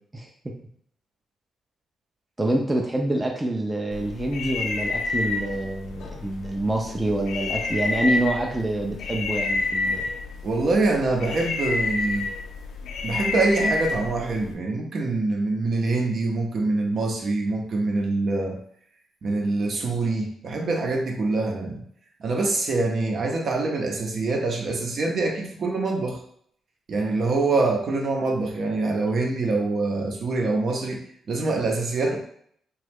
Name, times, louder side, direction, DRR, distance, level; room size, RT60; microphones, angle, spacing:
voice 1, 2.4-10.0, right 1 dB, 15° right, 1 dB, 0.4 m, -26 dB
sound 1, 3.9-14.5, left 3 dB, 85° left, 0.4 m, -29 dB
voice 2, 10.4-12.3 13.0-18.6 19.2-21.8 22.2-26.2 26.9-31.0 31.3-32.2, right 3 dB, 60° right, 1 dB, 0.7 m, -25 dB
3.0 x 2.3 x 3.4 m, 0.65 s
cardioid pair, 95°, 0 cm